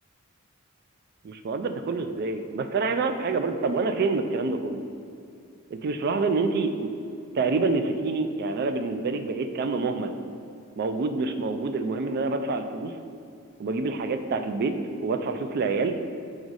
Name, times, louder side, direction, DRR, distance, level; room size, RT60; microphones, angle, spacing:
voice 1, 1.2-4.8 5.7-6.9 7.3-10.2 10.8-12.9 13.6-14.7 15.0-16.0, right 3 dB, 45° right, 8 dB, 0.3 m, -27 dB
5.1 x 3.9 x 4.7 m, 2.5 s
head